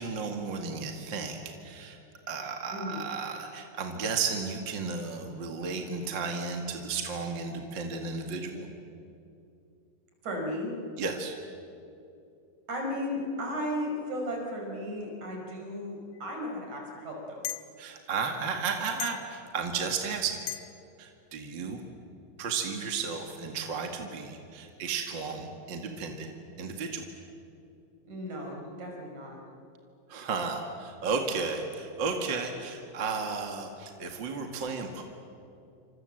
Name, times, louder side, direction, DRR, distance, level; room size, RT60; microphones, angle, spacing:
voice 1, 0.0-2.0 2.3-8.7 11.0-11.4 17.8-20.4 21.0-21.8 22.4-26.3 26.6-27.1 30.1-35.0, right 5 dB, 40° right, 3 dB, 2.2 m, -33 dB
voice 2, 10.2-10.7 12.7-17.5 28.1-29.4, left 1 dB, 55° right, 1 dB, 6.4 m, -35 dB
sound 1, 16.2-16.3 17.4-17.7 19.0-19.3 20.5-20.7, left 11 dB, 65° left, 2.0 m, -35 dB
28.5 x 26.5 x 7.9 m, 2.7 s
omnidirectional pair, 4.0 m